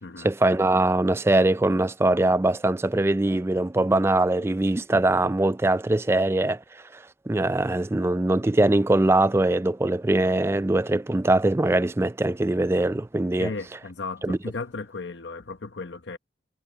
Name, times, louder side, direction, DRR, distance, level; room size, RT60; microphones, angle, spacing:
voice 1, 0.2-13.5 14.2-14.4, right 2 dB, 15° right, 0.3 m, -22 dB
voice 2, 13.4-16.2, left 3 dB, 80° left, 1.1 m, -35 dB
head